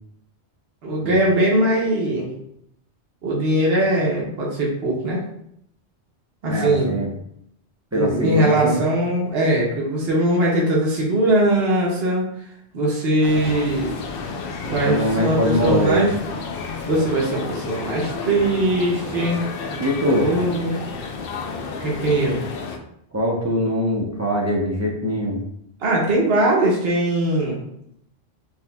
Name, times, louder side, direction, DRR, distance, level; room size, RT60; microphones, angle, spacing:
voice 1, 0.8-2.3 3.2-5.2 6.4-6.9 7.9-12.3 12.7-14.0 14.6-16.1 16.9-19.4 20.0-20.8 21.8-22.4 25.8-27.6, right 1 dB, 65° right, -4 dB, 1.1 m, -20 dB
voice 2, 6.4-7.1 7.9-8.8 14.7-16.1 19.8-20.3 23.1-25.4, equal, 15° right, -3 dB, 0.6 m, -22 dB
sound 1, 13.2-22.8, left 4 dB, 65° left, 0.7 m, -31 dB
5.8 x 3.0 x 2.3 m, 0.74 s
omnidirectional pair, 1.1 m